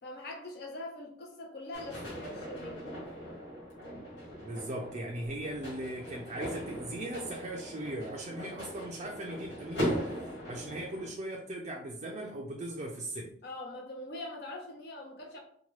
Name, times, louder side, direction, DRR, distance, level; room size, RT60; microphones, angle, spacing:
voice 1, 0.0-2.9 13.4-15.4, left 2 dB, 60° left, 0 dB, 0.6 m, -43 dB
sound 1, 1.7-11.1, equal, 90° left, 1.5 m, -39 dB
voice 2, 4.4-13.3, right 1 dB, 40° right, -1 dB, 0.4 m, -39 dB
2.9 x 2.2 x 3.1 m, 0.63 s
head